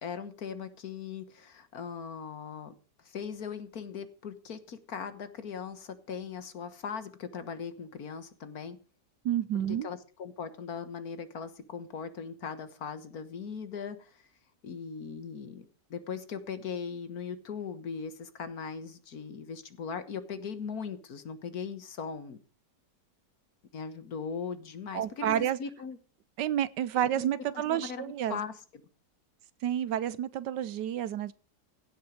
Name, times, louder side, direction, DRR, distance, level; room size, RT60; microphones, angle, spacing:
voice 1, 0.0-2.7 3.0-8.8 9.7-14.2 14.6-15.7 15.9-22.4 23.7-26.0 27.2-27.3 27.7-28.5, left 6 dB, 55° left, 1.7 m, -39 dB
voice 2, 9.2-9.9 24.9-25.6 26.4-28.4 29.6-31.3, right 11 dB, 75° right, 1.3 m, -30 dB
16.0 x 7.4 x 5.0 m
omnidirectional pair, 1.9 m